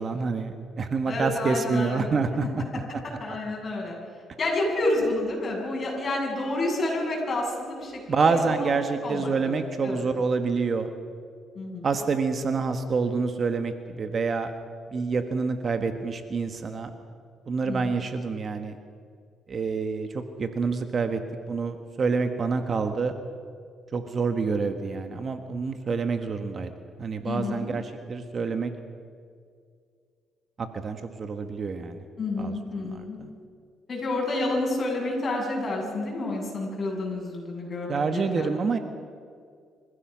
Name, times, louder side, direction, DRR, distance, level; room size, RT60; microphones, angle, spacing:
voice 1, 0.0-2.4 8.1-10.9 11.8-14.5 14.9-16.9 17.5-18.8 19.5-21.2 21.5-23.1 23.9-26.7 27.0-28.7 30.6-32.0 32.4-32.5 33.2-33.3 37.9-38.8, right 4 dB, 45° right, 8 dB, 1.5 m, -27 dB
voice 2, 1.1-2.1 2.4-2.5 3.2-4.0 4.4-10.0 11.5-12.0 17.7-17.9 27.2-27.7 32.2-33.2 33.9-38.5, left 2 dB, 40° left, -2 dB, 7.5 m, -29 dB
27.0 x 15.5 x 6.3 m, 2.2 s
cardioid pair, 90°, 0 cm